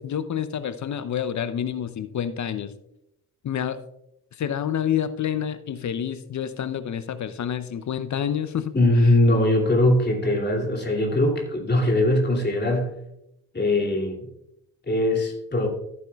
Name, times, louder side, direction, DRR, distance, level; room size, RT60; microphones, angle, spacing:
voice 1, 0.0-2.7 3.4-3.8 4.4-8.7, left 9 dB, 40° left, 12 dB, 0.7 m, -28 dB
voice 2, 8.7-12.9 13.5-14.3 14.9-15.7, left 1 dB, 20° left, -1 dB, 2.8 m, -21 dB
14.5 x 8.5 x 2.4 m, 0.82 s
hypercardioid pair, 40°, 45 cm